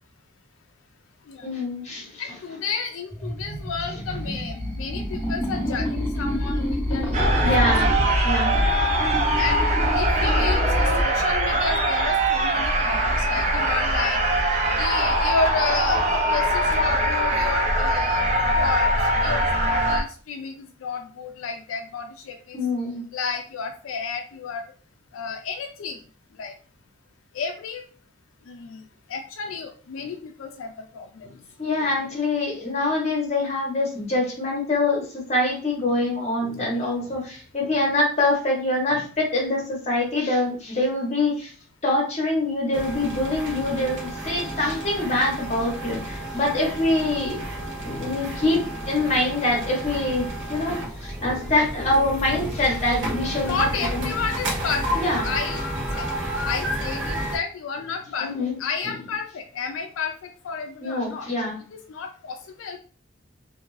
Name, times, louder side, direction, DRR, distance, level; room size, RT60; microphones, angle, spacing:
voice 1, 1.4-2.2 7.4-7.9 8.2-8.6 22.5-23.0 31.6-41.5 41.8-47.4 47.8-54.1 54.9-55.3 58.2-58.6 60.8-61.6, left 2 dB, 35° left, -1 dB, 1.0 m, -24 dB
voice 2, 2.2-7.3 9.4-9.6 9.9-14.2 14.8-16.0 16.3-18.2 18.5-22.6 23.1-24.6 25.1-26.0 26.4-26.5 27.3-27.8 28.5-28.8 29.1-31.3 36.7-36.9 53.4-55.7 55.9-56.1 56.4-58.3 58.6-60.1 60.4-61.3 61.7-62.8, left 5 dB, 85° left, 4 dB, 0.4 m, -31 dB
sound 1, 3.1-11.0, left 1 dB, 10° left, 0.7 m, -26 dB
sound 2, 7.1-20.0, right 1 dB, 35° right, 0.6 m, -22 dB
sound 3, 42.7-57.4, right 1 dB, 60° right, 0.9 m, -31 dB
2.6 x 2.5 x 3.1 m, 0.41 s
head